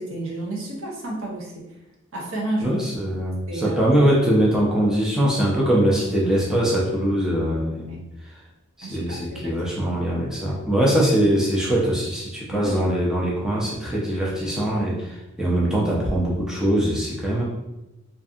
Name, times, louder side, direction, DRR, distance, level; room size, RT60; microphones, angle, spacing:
voice 1, 0.0-1.7 2.1-2.8 3.5-3.8 7.9-8.0 8.8-9.6 9.9-10.0 10.5-10.6 12.5-12.7, right 2 dB, 65° right, -2 dB, 0.7 m, -31 dB
voice 2, 2.6-8.0 8.8-17.4, right 1 dB, 5° right, -6 dB, 0.4 m, -22 dB
2.6 x 2.5 x 2.4 m, 0.97 s
head